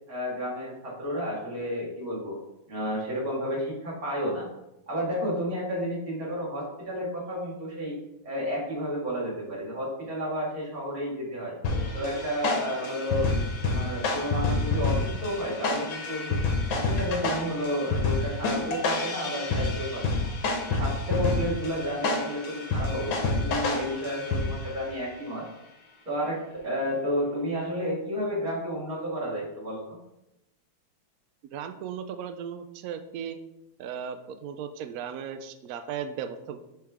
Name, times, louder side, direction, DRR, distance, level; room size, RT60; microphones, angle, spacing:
voice 1, 0.1-2.4 2.7-4.5 4.9-7.9 8.2-11.6 11.9-13.3 13.6-16.4 16.7-20.3 20.7-25.4 26.1-30.0, equal, 45° right, -5 dB, 2.5 m, -31 dB
sound 1, 11.6-24.8, left 3 dB, 80° left, 1.7 m, -29 dB
voice 2, 31.5-33.4 33.8-36.6, right 8 dB, 90° right, 8 dB, 0.7 m, -36 dB
10.0 x 3.4 x 3.5 m, 0.89 s
omnidirectional pair, 2.1 m